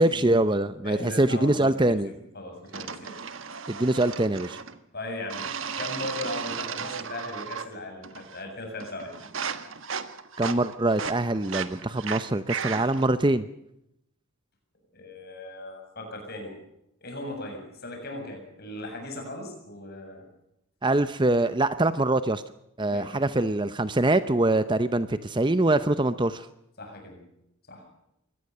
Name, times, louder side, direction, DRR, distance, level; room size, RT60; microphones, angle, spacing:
voice 1, 0.0-2.1 3.7-4.6 10.4-13.5 20.8-22.4 22.8-26.5, right 2 dB, 20° right, 12 dB, 0.7 m, -24 dB
voice 2, 0.8-3.2 4.0-4.1 4.9-5.4 5.8-9.3 14.9-16.5 17.0-20.3 22.9-23.3 26.8-27.2 27.7-27.9, left 1 dB, 45° left, 3 dB, 7.4 m, -38 dB
sound 1, 2.7-4.8 5.3-7.8 8.0-8.5 8.8-13.1, right 6 dB, 60° right, 1.5 m, -35 dB
23.5 x 18.5 x 6.7 m, 0.81 s
head